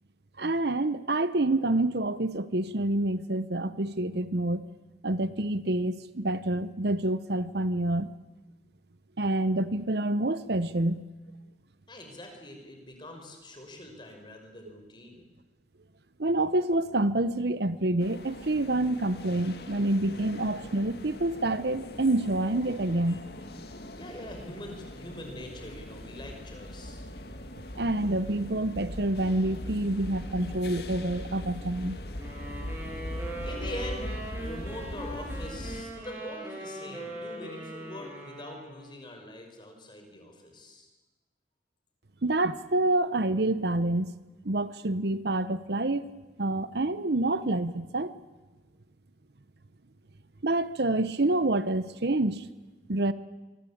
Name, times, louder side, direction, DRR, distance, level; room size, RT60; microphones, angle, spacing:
voice 1, 0.4-4.7 5.0-8.1 9.2-11.0 16.2-23.2 27.7-32.0 42.2-44.1 44.4-46.1 46.4-48.1 50.4-52.5 52.9-53.1, right 2 dB, 65° right, 1.0 m, -27 dB
voice 2, 11.9-15.2 23.1-23.2 23.9-27.0 33.1-40.9, left 1 dB, 25° left, 5.8 m, -43 dB
sound 1, 18.0-35.8, left 1 dB, 60° left, 2.1 m, -41 dB
sound 2, 32.2-39.0, right 1 dB, 15° right, 7.0 m, -41 dB
26.0 x 24.5 x 8.7 m
head